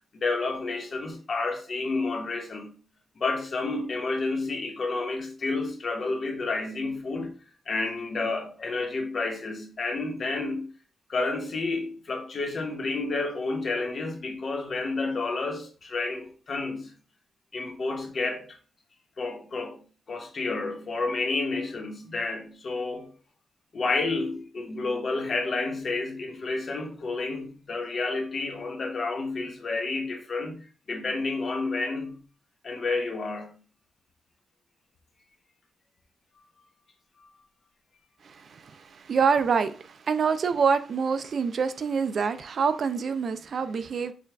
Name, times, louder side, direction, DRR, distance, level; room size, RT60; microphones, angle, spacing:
voice 1, 0.2-2.7 3.2-7.3 7.7-10.7 11.1-16.9 17.5-18.5 19.2-19.8 20.1-23.1 23.7-30.6 30.9-32.2 32.6-33.6, left 3 dB, 40° left, 1.0 m, -30 dB
voice 2, 38.2-44.1, right 5 dB, 50° right, 0.3 m, -26 dB
6.7 x 2.3 x 3.4 m
wide cardioid pair, 175°, 0 cm